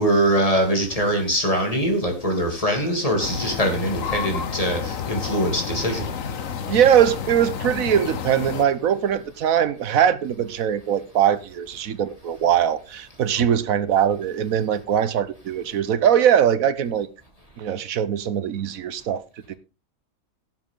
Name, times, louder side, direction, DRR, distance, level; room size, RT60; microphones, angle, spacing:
voice 1, 0.0-6.1, right 1 dB, 25° left, 3.0 m, -22 dB
sound 1, 3.2-8.6, left 7 dB, 70° left, 1.4 m, -30 dB
voice 2, 6.7-17.1 17.6-19.2 19.5-19.6, right 9 dB, 85° right, 1.3 m, -21 dB
17.0 x 7.5 x 3.8 m
omnidirectional pair, 1.4 m